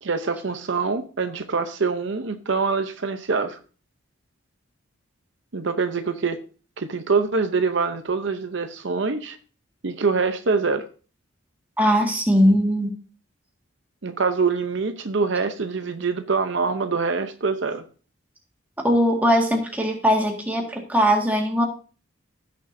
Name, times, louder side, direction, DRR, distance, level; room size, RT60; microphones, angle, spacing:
voice 1, 0.0-3.6 5.5-6.4 6.8-9.4 9.8-10.8 14.0-17.8, right 4 dB, 60° right, 8 dB, 0.7 m, -24 dB
voice 2, 11.8-12.9 18.8-21.6, equal, 10° right, 0 dB, 1.8 m, -20 dB
16.5 x 6.7 x 2.7 m, 0.37 s
head